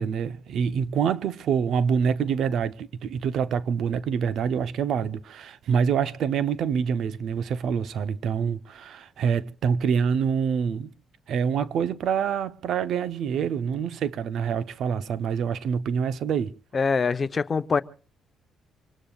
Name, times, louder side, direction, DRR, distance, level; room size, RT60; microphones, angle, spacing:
voice 1, 0.0-10.9 11.3-16.5, right 7 dB, 70° right, 0.7 m, -26 dB
voice 2, 16.7-17.8, left 5 dB, 35° left, 0.9 m, -24 dB
26.0 x 20.0 x 2.4 m
cardioid pair, 90°, 0 cm